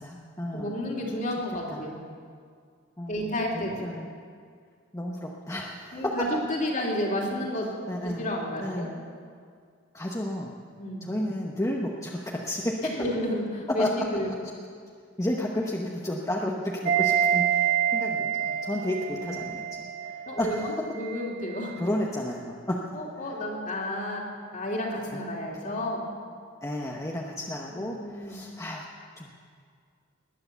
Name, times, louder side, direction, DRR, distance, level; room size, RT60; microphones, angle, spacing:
voice 1, 0.0-0.8 1.7-1.8 3.0-4.0 4.9-6.3 7.9-8.3 8.6-9.0 9.9-10.6 11.0-13.1 13.8-13.9 15.2-20.8 21.8-23.0 25.1-25.2 26.6-28.8 29.2-29.3, left 1 dB, 15° left, -2 dB, 1.0 m, -32 dB
voice 2, 0.5-2.0 3.1-3.9 5.9-7.7 8.0-8.9 10.8-11.1 12.8-14.3 19.1-19.5 20.3-21.8 22.9-24.2 24.5-26.1 27.7-28.4, left 1 dB, 45° left, -2 dB, 3.0 m, -31 dB
sound 1, 16.9-20.8 21.0-21.1, right 9 dB, 40° right, 3.1 m, -27 dB
20.5 x 9.7 x 6.9 m, 2.1 s
head